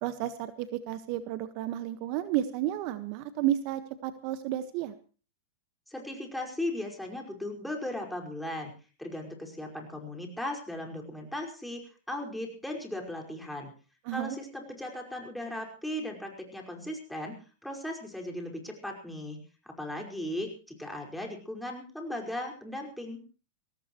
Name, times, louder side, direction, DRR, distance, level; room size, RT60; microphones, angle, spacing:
voice 1, 0.0-4.9 14.0-14.4, right 12 dB, 50° right, 10 dB, 1.4 m, -32 dB
voice 2, 5.9-8.7 9.0-11.8 12.1-13.7 14.1-19.4 19.6-23.2, left 1 dB, ahead, 1 dB, 5.2 m, -37 dB
23.0 x 17.5 x 3.2 m, 0.39 s
hypercardioid pair, 130°, 0 cm